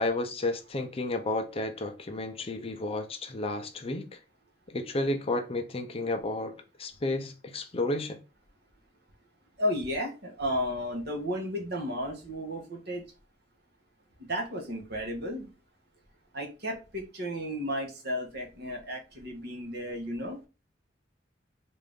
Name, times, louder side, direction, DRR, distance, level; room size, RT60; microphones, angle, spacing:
voice 1, 0.0-4.0 4.7-6.5 6.8-8.2, left 2 dB, 30° left, 0.5 m, -31 dB
voice 2, 9.6-13.0 14.3-15.5 16.3-20.4, equal, 60° right, 1.1 m, -33 dB
3.7 x 2.6 x 3.5 m
head